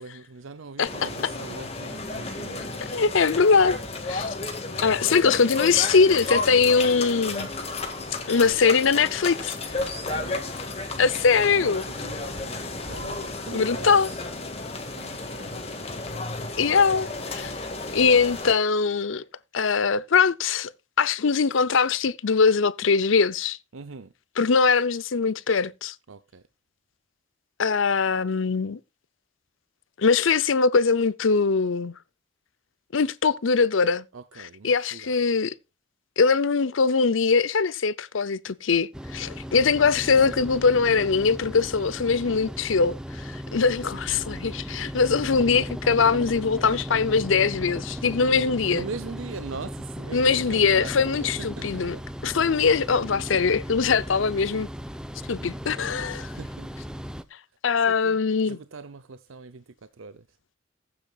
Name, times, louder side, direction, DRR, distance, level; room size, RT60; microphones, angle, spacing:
voice 1, 0.0-2.8 9.8-10.5 11.3-14.3 14.6-15.9 23.7-24.1 26.1-26.4 34.1-35.1 48.7-52.0 56.3-56.7 57.8-58.2 58.4-60.3, right 4 dB, 85° right, 0.7 m, -41 dB
sound 1, 0.9-18.5, left 3 dB, 30° left, 1.9 m, -33 dB
voice 2, 2.9-3.8 4.1-4.3 4.8-7.5 8.3-9.6 11.0-11.8 13.5-14.1 16.6-17.5 17.9-19.2 19.5-20.7 21.0-23.6 24.4-25.9 27.6-28.8 30.0-31.9 32.9-34.0 34.6-35.5 36.2-48.8 50.1-52.0 52.2-54.7 55.3-56.3 57.6-58.6, left 5 dB, 80° left, 0.6 m, -22 dB
sound 2, 38.9-57.2, equal, 5° right, 0.6 m, -36 dB
16.0 x 8.7 x 2.4 m
head